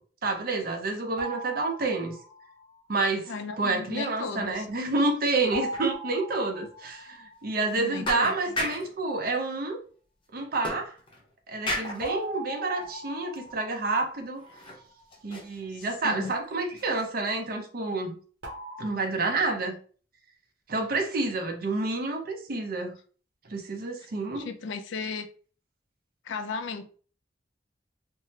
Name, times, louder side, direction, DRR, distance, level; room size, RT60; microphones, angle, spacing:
voice 1, 0.2-2.2 2.9-3.3 3.6-9.8 10.3-11.0 11.5-14.4 15.2-18.2 18.8-19.8 20.7-22.9 23.5-24.5, right 3 dB, 50° right, 4 dB, 0.6 m, -29 dB
sound 1, 1.2-2.7 5.5-8.0 12.0-15.2 18.4-18.9, right 2 dB, 80° right, 0.9 m, -40 dB
voice 2, 3.3-4.7 7.8-8.3 15.7-16.3 24.3-25.3 26.2-26.9, left 4 dB, 80° left, 8 dB, 0.4 m, -35 dB
sound 2, 4.4-4.8 5.1-5.2 5.7-5.9 6.3-6.4 6.9-7.0 7.7-7.8 8.0-9.0 10.6-11.3 11.7-12.1 12.8-12.9 13.5-13.6 14.3-14.9 15.1-16.4 16.8-17.1, left 1 dB, 25° left, 0.7 m, -35 dB
3.5 x 2.1 x 2.7 m, 0.41 s
head